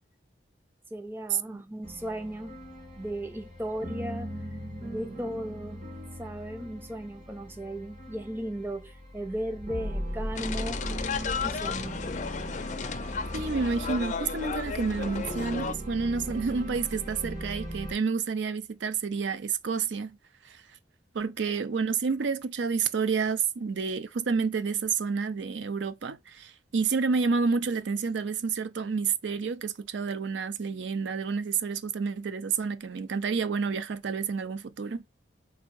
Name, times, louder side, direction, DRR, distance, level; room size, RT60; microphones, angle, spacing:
voice 1, 0.9-2.6 3.0-4.6 4.9-5.9 6.2-11.0 11.4-12.0, right 1 dB, 10° right, 0.5 m, -36 dB
sound 1, 1.8-17.9, equal, 40° right, 2.2 m, -38 dB
sound 2, 10.3-15.7, left 5 dB, 40° left, 0.4 m, -34 dB
voice 2, 13.3-20.2 20.4-20.6 21.1-35.0, right 5 dB, 70° right, 0.4 m, -29 dB
3.9 x 2.6 x 4.5 m
head